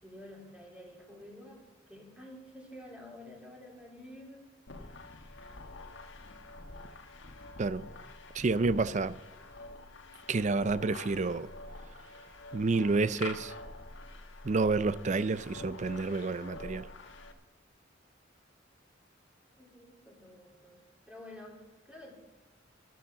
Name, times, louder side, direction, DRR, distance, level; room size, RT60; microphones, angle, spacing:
voice 1, 0.0-1.6 1.9-4.5 19.6-22.1, left 1 dB, 5° right, 3.2 m, -50 dB
sound 1, 4.7-17.3, left 2 dB, 80° left, 1.4 m, -46 dB
voice 2, 8.3-9.2 10.3-11.5 12.5-13.5 14.4-16.9, right 3 dB, 40° right, 0.4 m, -29 dB
13.0 x 9.3 x 7.1 m
head